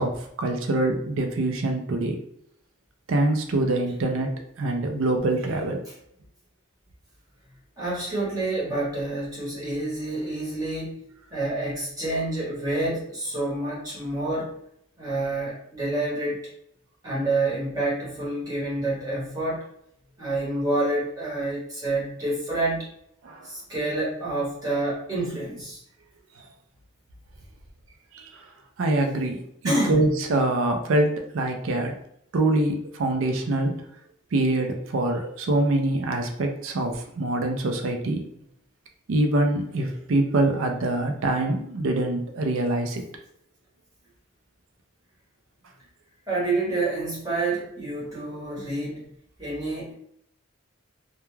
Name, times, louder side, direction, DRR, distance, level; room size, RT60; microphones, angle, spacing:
voice 1, 0.0-2.2 3.1-4.3 4.6-5.8 23.2-23.4 28.1-28.4 28.8-29.4 29.6-32.0 32.3-33.8 34.3-38.3 39.1-43.1, right 2 dB, 75° right, 4 dB, 0.5 m, -24 dB
voice 2, 7.8-11.0 11.3-14.5 15.0-16.4 17.0-19.6 20.2-22.9 23.4-25.8 29.6-30.1 46.3-49.0 49.4-49.9, right 2 dB, 20° right, -8 dB, 1.0 m, -28 dB
2.3 x 2.2 x 3.1 m, 0.72 s
head